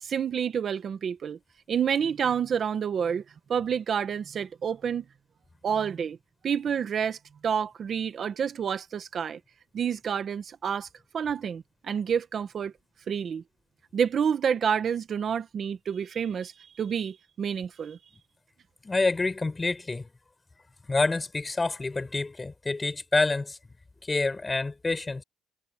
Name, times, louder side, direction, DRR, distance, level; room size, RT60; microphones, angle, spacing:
voice 1, 0.0-1.4 1.7-3.2 3.5-5.0 5.6-6.2 6.4-9.4 9.7-10.9 11.1-12.7 13.1-13.4 13.9-18.0, right 7 dB, 35° right, 1.0 m, -29 dB
voice 2, 18.8-20.1 20.9-23.6 24.1-25.2, left 3 dB, 15° left, 4.2 m, -27 dB
cardioid pair, 175°, 0 cm